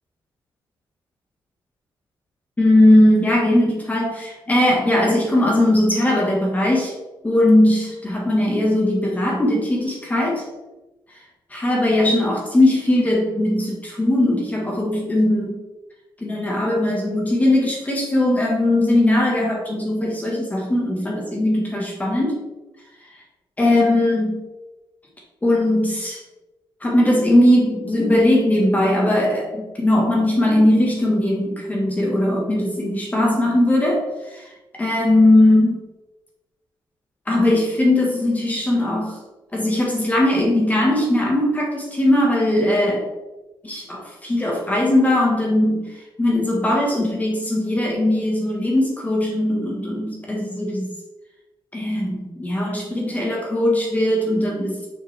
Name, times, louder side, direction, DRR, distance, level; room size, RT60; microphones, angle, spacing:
voice 1, 2.6-7.0 7.2-10.5 11.1-15.6 16.2-22.4 23.0-23.2 23.6-24.4 25.4-26.2 26.8-35.8 37.2-39.2 39.5-43.1 43.6-50.9 51.7-54.8, left 1 dB, 20° left, -2 dB, 1.4 m, -19 dB
6.8 x 6.1 x 3.4 m, 1.1 s
wide cardioid pair, 140°, 8 cm